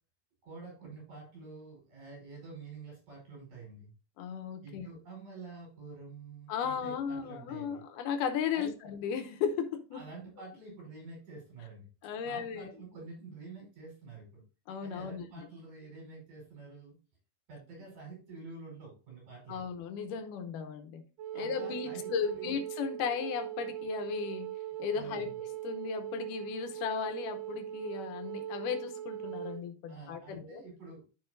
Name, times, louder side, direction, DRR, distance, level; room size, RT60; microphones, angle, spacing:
voice 1, 0.4-3.9 4.6-7.8 8.5-8.7 9.9-11.9 12.2-14.4 14.8-17.0 17.5-19.6 21.3-22.5 24.9-25.4 29.9-31.0, right 3 dB, 75° right, -2 dB, 6.7 m, -48 dB
voice 2, 4.2-4.9 6.5-10.0 12.0-12.7 14.7-15.3 19.5-21.0 21.3-24.5 24.8-30.6, left 7 dB, 85° left, 7 dB, 2.5 m, -36 dB
Wind instrument woodwind instrument, 21.2-29.6, right 11 dB, 90° right, 2.3 m, -40 dB
12.5 x 5.4 x 2.6 m, 0.33 s
omnidirectional pair, 3.7 m